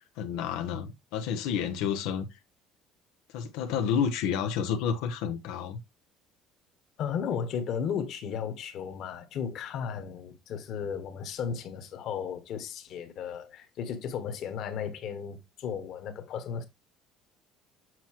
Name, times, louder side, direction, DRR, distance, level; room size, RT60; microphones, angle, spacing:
voice 1, 0.2-2.4 3.3-5.8, left 7 dB, 80° left, 1.0 m, -30 dB
voice 2, 7.0-16.6, left 7 dB, 40° left, 1.5 m, -35 dB
8.0 x 5.9 x 3.0 m
cardioid pair, 180°, 0 cm